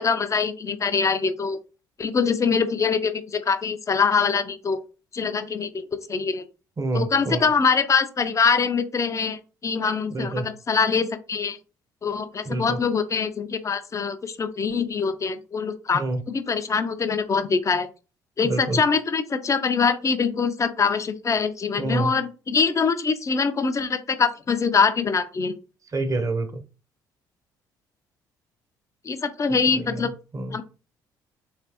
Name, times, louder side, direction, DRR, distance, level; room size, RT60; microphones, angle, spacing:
voice 1, 0.0-1.6 2.0-4.8 5.1-6.5 6.9-11.6 12.0-17.9 18.4-25.6 29.0-30.1 30.5-30.6, left 5 dB, 30° left, 0.6 m, -24 dB
voice 2, 6.8-7.5 10.1-10.5 12.4-12.8 15.9-16.2 18.4-18.8 21.8-22.1 25.9-26.6 29.7-30.6, right 2 dB, 35° right, 0.9 m, -27 dB
3.3 x 3.2 x 3.0 m
hypercardioid pair, 55°, 10 cm